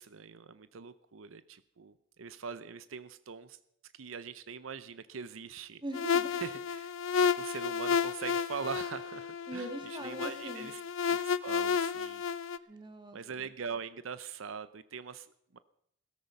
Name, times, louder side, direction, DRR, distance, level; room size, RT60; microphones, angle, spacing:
voice 1, 0.0-5.8 6.4-12.2 13.1-15.3 15.5-15.6, right 6 dB, 80° right, 14 dB, 0.7 m, -43 dB
voice 2, 5.8-6.4 9.5-10.7 12.7-13.5, right 1 dB, 25° right, 6 dB, 1.9 m, -42 dB
sound 1, 5.9-12.6, left 6 dB, 80° left, 0.6 m, -32 dB
17.0 x 13.5 x 5.3 m, 0.73 s
head